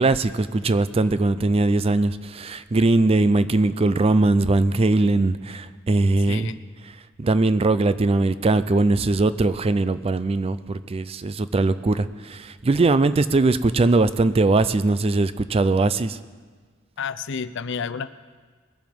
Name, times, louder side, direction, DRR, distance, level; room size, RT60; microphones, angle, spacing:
voice 1, 0.0-6.9 7.2-16.2, right 2 dB, 30° right, 14 dB, 0.4 m, -20 dB
voice 2, 6.3-6.6 17.0-18.1, left 6 dB, 60° left, 14 dB, 0.5 m, -30 dB
21.5 x 7.7 x 5.2 m, 1.5 s
head